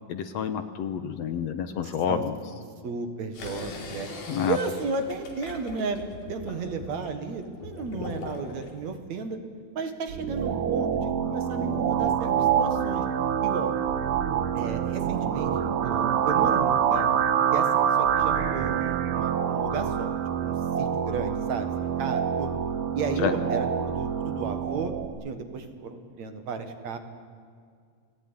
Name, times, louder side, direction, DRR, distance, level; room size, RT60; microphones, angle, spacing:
voice 1, 0.1-2.3 4.3-4.6 23.2-23.3, left 7 dB, 65° left, 9 dB, 2.1 m, -28 dB
voice 2, 2.8-4.1 4.5-6.0 6.3-9.4 9.7-13.0 13.4-13.7 14.5-15.5 15.8-17.1 17.5-20.1 20.4-21.7 22.0-22.5 22.9-24.9 25.2-27.0, right 4 dB, 60° right, 7 dB, 2.9 m, -33 dB
sound 1, 3.3-8.7, left 3 dB, 85° left, 4.7 m, -40 dB
sound 2, 10.1-25.1, right 8 dB, 80° right, 2.9 m, -26 dB
28.5 x 19.0 x 9.9 m, 2.1 s
omnidirectional pair, 3.6 m